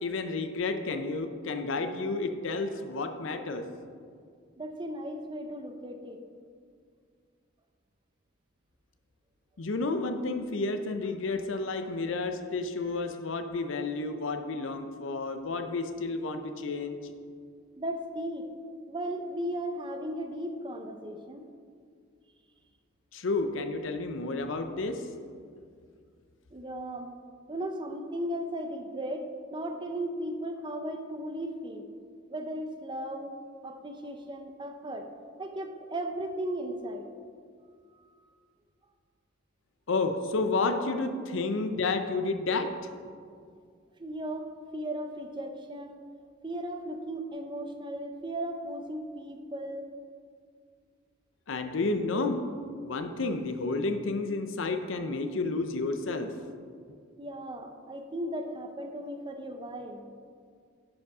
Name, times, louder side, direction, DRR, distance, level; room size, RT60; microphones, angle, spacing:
voice 1, 0.0-3.7 9.6-17.1 23.1-25.1 39.9-42.8 51.5-52.5 52.8-56.4, left 3 dB, 65° left, 8 dB, 0.6 m, -31 dB
voice 2, 4.6-6.2 17.8-18.5 18.9-21.4 26.5-27.1 27.5-31.9 32.3-33.4 33.6-35.1 35.4-37.1 37.9-38.4 44.0-46.1 46.4-49.9 57.2-60.1, right 1 dB, 25° right, 6 dB, 0.6 m, -36 dB
10.5 x 5.1 x 4.8 m, 2.1 s
head